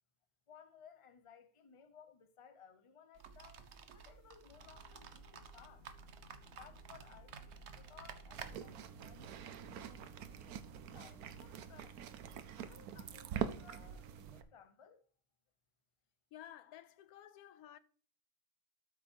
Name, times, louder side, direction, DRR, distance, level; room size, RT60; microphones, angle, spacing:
voice 1, 0.5-5.9 6.5-12.0 12.5-15.0, left 7 dB, 30° left, 0.7 m, -61 dB
sound 1, 3.1-8.5, right 6 dB, 55° right, 1.0 m, -53 dB
sound 2, 4.4-11.8, left 3 dB, 65° left, 2.8 m, -62 dB
sound 3, 8.3-14.4, right 9 dB, 85° right, 1.3 m, -45 dB
voice 2, 16.3-17.8, left 11 dB, 90° left, 1.1 m, -54 dB
12.5 x 6.1 x 2.8 m
omnidirectional pair, 1.5 m